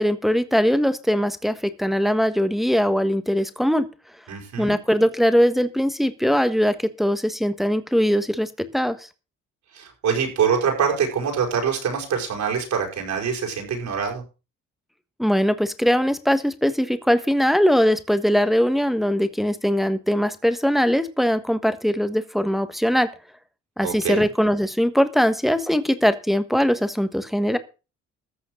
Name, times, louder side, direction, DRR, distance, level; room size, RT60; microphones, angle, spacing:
voice 1, 0.0-3.9 4.6-9.1 15.2-23.1 23.8-27.6, equal, ahead, 11 dB, 1.4 m, -21 dB
voice 2, 4.3-4.8 9.7-14.2 23.8-24.2, right 7 dB, 70° right, 1 dB, 5.8 m, -24 dB
14.5 x 6.3 x 6.3 m, 0.32 s
cardioid pair, 90°, 30 cm